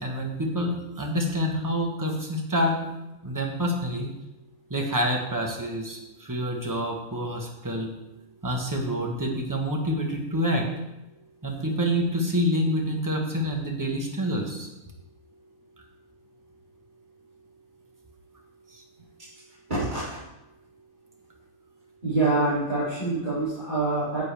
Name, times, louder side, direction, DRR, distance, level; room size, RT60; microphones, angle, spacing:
voice 1, 0.0-2.8 3.2-4.1 4.7-7.9 8.4-10.7 11.4-14.7 18.7-18.8, equal, 15° right, 1 dB, 1.2 m, -27 dB
voice 2, 19.7-20.2 22.0-24.2, right 2 dB, 30° right, -13 dB, 3.3 m, -25 dB
9.9 x 8.3 x 3.4 m, 0.96 s
omnidirectional pair, 1.6 m